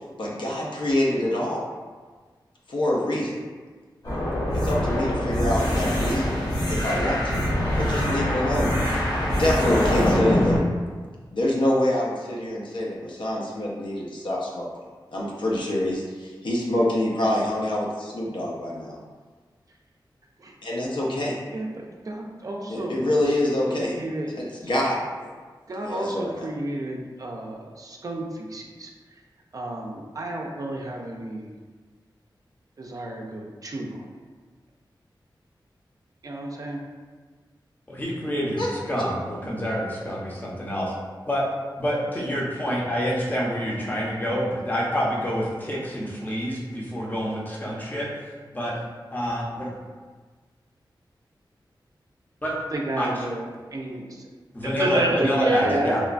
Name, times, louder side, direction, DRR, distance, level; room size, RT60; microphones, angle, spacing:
voice 1, 0.2-1.6 2.7-3.4 4.5-7.5 7.8-10.6 11.3-14.7 15.1-19.0 20.6-21.3 22.7-24.0 24.4-25.3 25.8-26.5 38.6-38.7, left 1 dB, 80° left, -4 dB, 0.5 m, -26 dB
sound 1, 4.0-10.6, left 1 dB, 50° left, 0.9 m, -24 dB
voice 2, 22.0-23.0 23.8-24.3 25.7-28.9 29.5-31.5 32.8-34.2 36.2-36.8 52.7-54.3 54.6-56.0, right 1 dB, 45° right, 0 dB, 0.4 m, -30 dB
voice 3, 37.9-40.9 41.3-41.4 41.8-48.1 48.5-48.7 49.1-49.7 52.4-52.6 53.0-53.1 54.5-56.0, equal, 20° left, -4 dB, 0.6 m, -27 dB
3.0 x 2.2 x 2.4 m, 1.4 s
wide cardioid pair, 105°, 8 cm